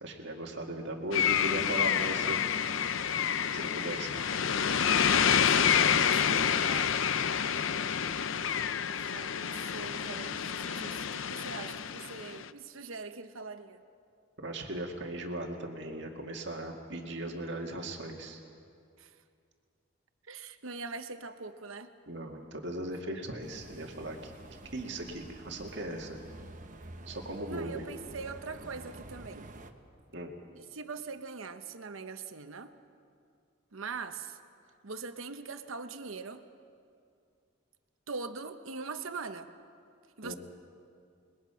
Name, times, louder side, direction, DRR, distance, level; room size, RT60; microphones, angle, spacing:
voice 1, 0.0-2.4 3.5-4.3 14.4-18.4 22.1-24.3 24.7-26.2 27.1-27.9 30.1-30.3 40.2-40.4, right 1 dB, 60° right, 1 dB, 2.1 m, -38 dB
sound 1, 1.1-12.5, left 8 dB, 75° left, 0.6 m, -28 dB
voice 2, 5.3-7.0 8.9-13.8 19.0-19.2 20.3-21.9 27.5-29.5 30.5-32.7 33.7-34.4 34.8-36.4 38.1-39.5 40.2-40.3, right 4 dB, 85° right, 8 dB, 1.0 m, -42 dB
sound 2, 23.4-29.7, right 1 dB, 40° right, 1.1 m, -48 dB
29.0 x 21.0 x 5.8 m, 2.3 s
head